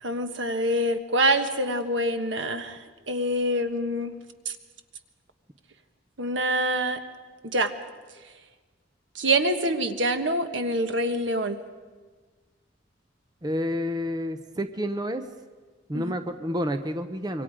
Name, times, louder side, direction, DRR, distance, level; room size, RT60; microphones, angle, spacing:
voice 1, 0.0-2.8 3.1-4.1 4.4-4.5 6.2-7.0 7.4-7.7 9.1-11.6 15.9-16.1, right 1 dB, 70° right, 8 dB, 1.5 m, -25 dB
voice 2, 13.4-15.2 15.9-17.4, equal, 20° right, 8 dB, 0.9 m, -29 dB
26.5 x 23.5 x 5.1 m, 1.4 s
head